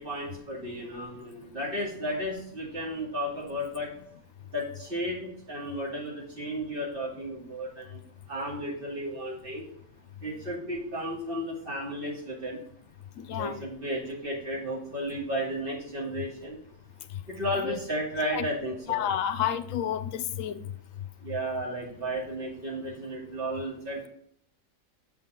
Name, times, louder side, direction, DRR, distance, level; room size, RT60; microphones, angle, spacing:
voice 1, 0.0-3.9 4.5-8.0 8.3-9.6 10.2-12.6 13.3-16.6 17.3-19.0 21.2-24.1, equal, 45° right, -4 dB, 2.5 m, -33 dB
voice 2, 13.2-13.7 17.6-17.8 18.3-18.5 18.9-20.6, left 10 dB, 80° left, 12 dB, 1.0 m, -30 dB
7.3 x 5.8 x 3.7 m, 0.66 s
omnidirectional pair, 1.3 m